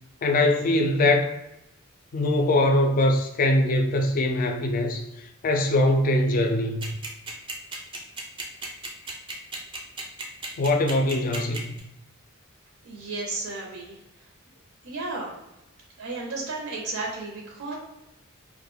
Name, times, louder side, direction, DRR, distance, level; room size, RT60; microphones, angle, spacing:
voice 1, 0.2-1.3 2.1-6.9 10.6-11.7, left 1 dB, 40° left, 0.3 m, -22 dB
sound 1, 6.8-11.8, right 3 dB, 25° right, 0.4 m, -34 dB
voice 2, 12.8-14.0 14.8-15.3 16.0-17.8, right 3 dB, 75° right, 0.5 m, -33 dB
2.3 x 2.0 x 3.0 m
head